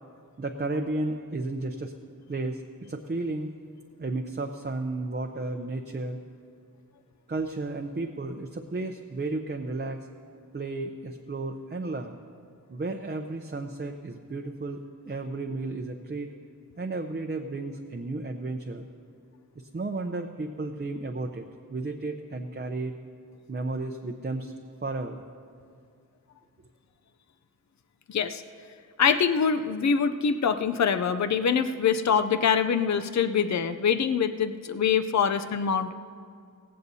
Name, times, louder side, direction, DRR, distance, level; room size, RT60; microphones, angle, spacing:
voice 1, 0.4-1.9 2.3-3.5 4.0-6.2 7.3-10.1 10.5-12.2 12.7-16.3 16.8-18.8 19.7-22.9 23.5-24.5 24.8-25.2, right 2 dB, 30° right, 3 dB, 0.6 m, -33 dB
voice 2, 28.1-28.4 29.0-35.9, left 6 dB, 55° left, 10 dB, 0.5 m, -24 dB
18.0 x 16.0 x 2.7 m, 2.3 s
wide cardioid pair, 75°, 34 cm